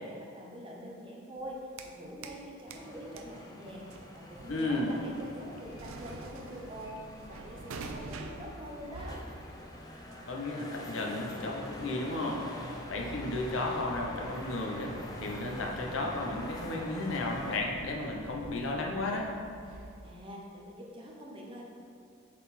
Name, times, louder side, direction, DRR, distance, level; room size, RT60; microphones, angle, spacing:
voice 1, 0.0-9.2 20.0-21.7, equal, 25° right, -2 dB, 0.8 m, -45 dB
sound 1, 1.4-2.4 2.7-20.2, right 3 dB, 75° right, 0.5 m, -48 dB
sound 2, 2.7-17.6, left 1 dB, 20° left, 0.5 m, -45 dB
voice 2, 4.5-5.0 10.3-12.4 12.9-19.3, left 2 dB, 65° left, 0 dB, 0.9 m, -33 dB
7.3 x 4.2 x 4.2 m, 2.3 s
head